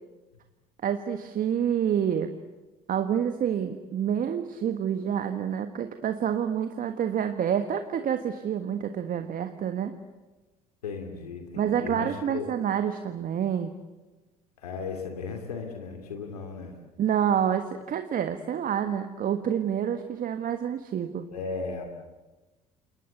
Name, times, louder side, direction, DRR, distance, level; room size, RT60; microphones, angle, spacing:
voice 1, 0.8-2.3 2.9-9.9 11.6-13.7 17.0-21.3, right 9 dB, 45° right, 8 dB, 1.5 m, -28 dB
voice 2, 10.8-12.5 14.6-16.7 21.3-21.9, left 4 dB, 85° left, 4 dB, 2.6 m, -36 dB
28.5 x 21.5 x 8.1 m, 1.2 s
hypercardioid pair, 60°, 19 cm